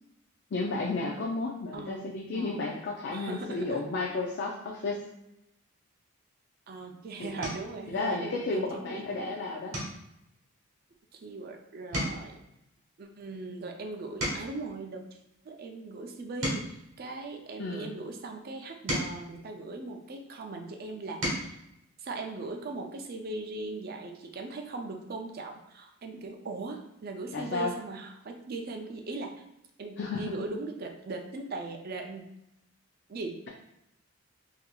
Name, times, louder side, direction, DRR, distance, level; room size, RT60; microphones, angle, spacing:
voice 1, 0.5-5.1 7.2-7.4 7.9-9.8 17.6-17.9 27.3-27.7 30.0-30.4, left 3 dB, 50° left, -2 dB, 0.4 m, -32 dB
voice 2, 2.3-2.7 3.1-3.8 6.7-9.4 11.1-12.4 13.0-15.1 15.4-21.6 22.0-29.3 29.8-32.3 33.1-33.4, right 3 dB, 45° right, 3 dB, 0.4 m, -39 dB
sound 1, 6.5-6.8 7.4-7.8 8.3-8.7 9.0-9.2 9.7-11.5 11.8-14.7 15.3-17.8 18.5-20.3 20.8-21.6 23.0-23.1 23.4-23.5, equal, 65° right, 1.3 m, -38 dB
4.1 x 2.7 x 2.3 m, 0.83 s
head